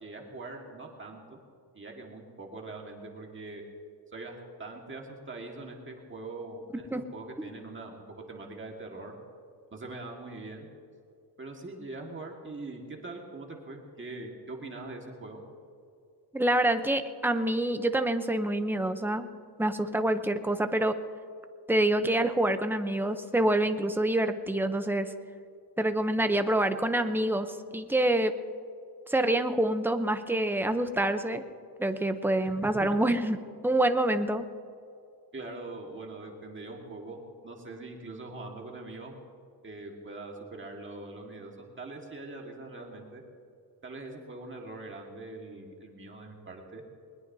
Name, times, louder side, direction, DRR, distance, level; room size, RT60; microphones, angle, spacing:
voice 1, 0.0-1.4 1.7-3.6 4.1-9.1 9.7-10.7 11.4-15.4 32.4-33.0 35.3-39.2 39.6-43.2 43.8-46.8, right 2 dB, 30° right, 1 dB, 1.7 m, -42 dB
voice 2, 16.3-19.3 19.6-21.0 21.7-25.1 25.8-28.3 29.1-31.4 31.8-33.4 33.6-34.4, right 1 dB, 5° right, 8 dB, 0.6 m, -26 dB
21.0 x 20.5 x 2.7 m, 2.3 s
wide cardioid pair, 155°, 41 cm